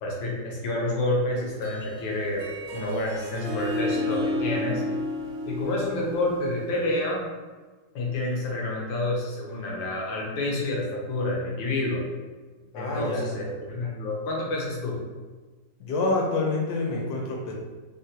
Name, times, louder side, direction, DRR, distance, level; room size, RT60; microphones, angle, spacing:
voice 1, 0.0-2.4 2.7-4.8 5.5-7.2 7.9-12.0 12.7-15.0, left 2 dB, 90° left, -2 dB, 1.5 m, -28 dB
Harp, 1.5-7.0, left 1 dB, 80° right, 1.2 m, -32 dB
voice 2, 12.7-13.3 15.8-17.5, left 2 dB, 70° left, -1 dB, 1.0 m, -27 dB
3.8 x 2.1 x 2.7 m, 1.3 s
omnidirectional pair, 1.9 m